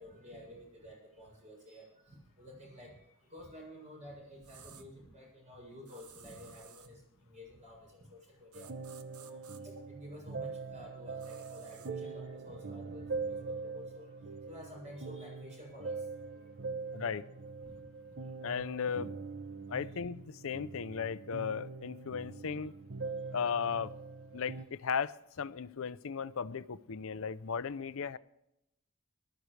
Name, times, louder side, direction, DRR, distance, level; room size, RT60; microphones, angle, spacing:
voice 1, 0.0-8.8 9.2-16.4 17.0-17.2 17.6-18.3, left 1 dB, 35° right, 7.0 m, -52 dB
sound 1, 4.4-4.9 5.9-6.9 8.5-9.6 11.2-11.9, right 8 dB, 85° right, 1.1 m, -56 dB
sound 2, 8.5-24.7, right 4 dB, 55° right, 0.7 m, -43 dB
voice 2, 18.4-19.1 19.7-22.7 23.3-24.0 24.3-28.2, left 6 dB, 65° left, 0.6 m, -36 dB
19.5 x 13.0 x 3.3 m
head